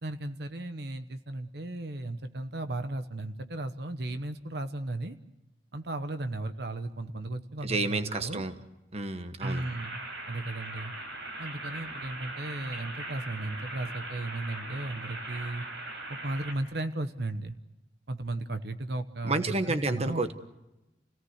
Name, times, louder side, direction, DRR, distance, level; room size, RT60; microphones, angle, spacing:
voice 1, 0.0-5.2 5.7-8.4 9.4-10.0 10.3-10.9 11.4-15.6 16.1-17.6 18.1-20.2, right 2 dB, 60° right, 9 dB, 1.1 m, -35 dB
voice 2, 7.6-8.5 8.9-9.6 19.2-20.3, right 3 dB, 35° right, 9 dB, 1.2 m, -30 dB
sound 1, 9.4-16.5, right 2 dB, 90° right, 4.7 m, -40 dB
29.5 x 18.0 x 8.1 m, 0.98 s
head